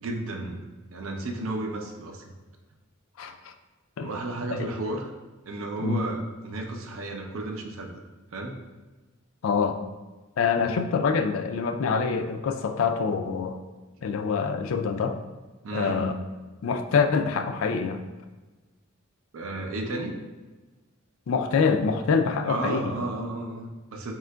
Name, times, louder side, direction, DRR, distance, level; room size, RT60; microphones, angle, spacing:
voice 1, 0.0-0.6 0.9-2.3 4.0-5.1 5.5-8.0 8.3-8.6 15.6-16.1 19.3-20.1 22.4-24.1, right 2 dB, 70° right, 2 dB, 0.5 m, -33 dB
voice 2, 3.2-3.5 4.0-4.1 4.6-4.7 5.8-6.0 9.4-9.8 10.4-13.6 14.0-15.2 15.7-16.1 16.6-18.0 21.3-23.0, left 5 dB, 70° left, 7 dB, 0.3 m, -25 dB
4.3 x 3.7 x 2.2 m, 1.2 s
head